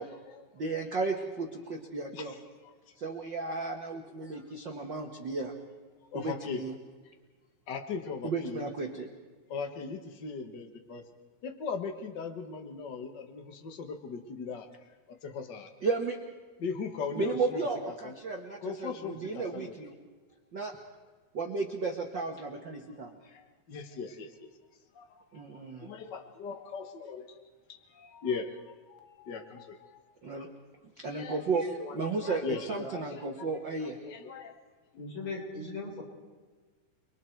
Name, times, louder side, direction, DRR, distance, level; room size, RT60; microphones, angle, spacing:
voice 1, 0.0-0.4 2.1-2.4 2.6-2.7 6.1-6.6 7.7-8.7 9.5-11.1 11.4-14.7 15.1-15.7 16.6-18.1 18.6-19.7 22.9-23.0 23.2-24.5 24.9-25.4 25.8-30.0 30.4-30.5 31.0-31.4 31.8-31.9 32.2-33.5 33.8-34.6, left 5 dB, 85° left, 6 dB, 0.9 m, -39 dB
voice 2, 0.5-2.3 3.0-5.5 6.1-6.7 8.2-9.1 15.8-16.2 17.2-19.9 20.5-20.7 21.3-23.1 25.3-25.9 30.2-30.5 31.0-32.4 32.7-34.0, right 3 dB, 55° right, 2 dB, 1.3 m, -34 dB
voice 3, 34.9-36.0, left 3 dB, 50° left, -1 dB, 5.6 m, -38 dB
29.5 x 22.0 x 4.6 m, 1.4 s
omnidirectional pair, 4.3 m